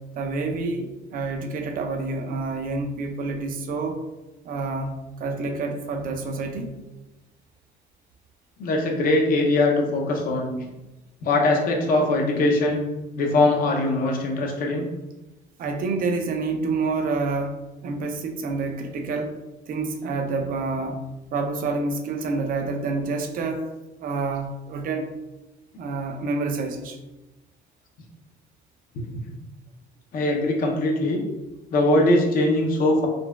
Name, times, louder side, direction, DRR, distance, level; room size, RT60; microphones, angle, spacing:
voice 1, 0.1-4.0 4.4-6.7 15.6-17.6 17.8-19.4 19.7-21.1 21.3-23.7 24.0-25.1 25.8-27.0, right 3 dB, 55° right, 5 dB, 0.5 m, -28 dB
voice 2, 8.6-10.5 11.2-12.8 13.2-14.9 28.9-29.0 30.1-31.2 31.7-33.1, left 2 dB, 60° left, 1 dB, 0.7 m, -21 dB
3.9 x 2.2 x 2.3 m, 1.0 s
cardioid pair, 110°, 17 cm